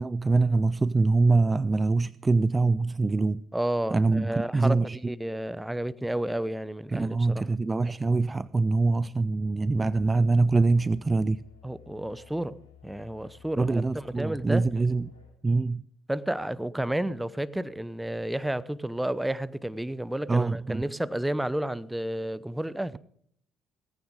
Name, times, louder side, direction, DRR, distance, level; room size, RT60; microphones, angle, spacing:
voice 1, 0.0-3.4 3.9-5.1 6.9-11.4 13.6-15.1 15.4-15.8 20.3-20.8, right 3 dB, 25° right, 0.5 m, -24 dB
voice 2, 3.5-7.5 11.6-12.6 12.8-14.6 16.1-23.0, right 1 dB, 5° right, 0.8 m, -31 dB
Musical instrument, 9.7-15.4, left 8 dB, 85° left, 2.9 m, -54 dB
17.5 x 15.5 x 3.6 m
figure-of-eight pair, 50°, 0 cm